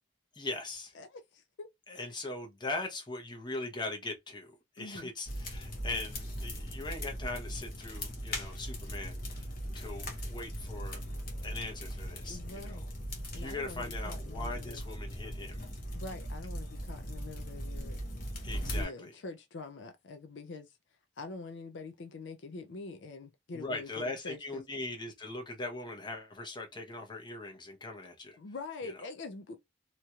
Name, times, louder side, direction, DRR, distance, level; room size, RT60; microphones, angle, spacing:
voice 1, 0.3-0.9 1.9-9.4 9.7-11.0 11.4-12.8 13.3-15.6 18.4-19.1 23.5-28.4, left 2 dB, 25° left, 0.9 m, -40 dB
voice 2, 0.9-1.7 4.8-5.1 12.3-12.9 13.3-14.8 15.9-18.0 18.7-20.8 21.2-24.6 28.4-29.6, left 3 dB, 70° left, 0.5 m, -45 dB
sound 1, 5.3-18.8, equal, 50° left, 1.0 m, -39 dB
2.9 x 2.8 x 2.3 m
head